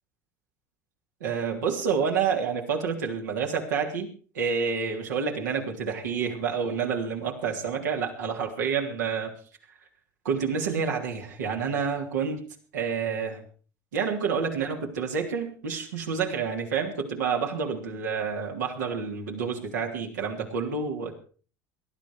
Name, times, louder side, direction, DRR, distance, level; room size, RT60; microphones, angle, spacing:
voice 1, 1.2-4.1 4.3-9.3 10.2-12.4 12.7-13.4 13.9-21.1, right 6 dB, 90° right, 1 dB, 3.1 m, -28 dB
18.5 x 12.0 x 4.8 m, 0.40 s
hypercardioid pair, 80°, 9 cm